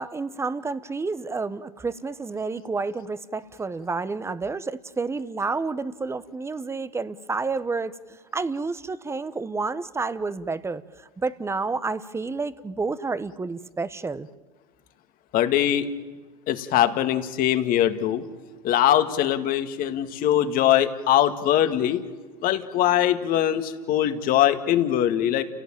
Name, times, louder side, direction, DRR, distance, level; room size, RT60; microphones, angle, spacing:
voice 1, 0.0-7.9 8.3-14.3, right 4 dB, 15° right, 15 dB, 1.1 m, -30 dB
voice 2, 15.3-15.9 16.5-18.2 18.6-22.0 22.4-25.4, left 11 dB, 50° left, 9 dB, 2.0 m, -22 dB
30.0 x 16.5 x 9.0 m, 1.3 s
hypercardioid pair, 100°, 19 cm